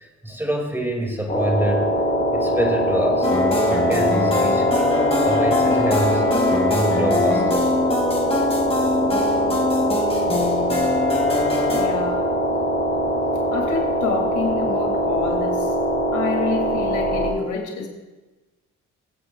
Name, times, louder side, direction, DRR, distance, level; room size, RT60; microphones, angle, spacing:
voice 1, 0.0-1.9 2.3-3.3 3.7-4.9 5.3-6.3 6.7-7.7, right 1 dB, 5° right, 1 dB, 2.3 m, -26 dB
sound 1, 1.3-17.3, equal, 35° left, 2.5 m, -22 dB
sound 2, 3.2-11.9, left 2 dB, 20° left, 2.4 m, -23 dB
voice 2, 11.7-12.3 13.5-15.7 16.1-17.9, left 5 dB, 75° left, 1 dB, 2.4 m, -28 dB
22.5 x 7.6 x 2.4 m, 1.2 s
cardioid pair, 90°, 30 cm